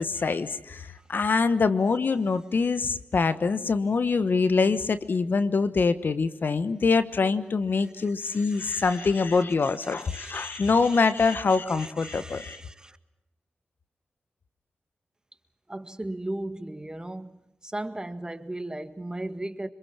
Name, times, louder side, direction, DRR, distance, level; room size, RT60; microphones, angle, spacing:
voice 1, 0.0-12.6, left 4 dB, 65° left, 1.2 m, -24 dB
voice 2, 7.8-9.4 9.8-11.3 11.7-13.0 15.7-19.7, right 1 dB, 20° right, 1.9 m, -38 dB
26.0 x 22.0 x 7.5 m
cardioid pair, 45°, 4 cm